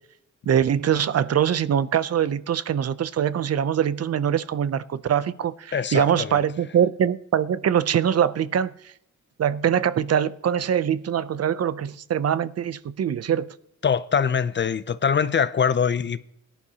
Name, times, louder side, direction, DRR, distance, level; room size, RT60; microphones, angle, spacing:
voice 1, 0.5-8.7 9.4-13.5, right 9 dB, 55° right, 0.5 m, -23 dB
voice 2, 5.7-6.4 13.8-16.2, left 7 dB, 35° left, 0.5 m, -23 dB
17.5 x 11.0 x 2.8 m
cardioid pair, 95°, 31 cm